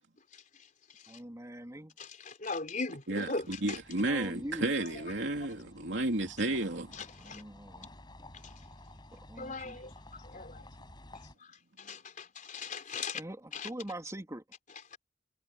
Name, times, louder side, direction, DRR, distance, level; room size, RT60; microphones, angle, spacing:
voice 1, 1.1-2.0 4.0-4.7 7.2-7.9 9.1-9.8 13.1-14.4, right 1 dB, 20° right, 3.0 m, -43 dB
voice 2, 2.0-3.8 4.8-5.4 6.9-7.4 8.4-8.5 9.4-10.7 11.4-11.5 11.8-13.2 13.5-13.7 14.9-15.0, left 4 dB, 45° left, 4.1 m, -40 dB
voice 3, 3.1-6.9, right 2 dB, 85° right, 3.0 m, -32 dB
sound 1, 3.4-11.4, left 1 dB, 25° left, 7.0 m, -53 dB
head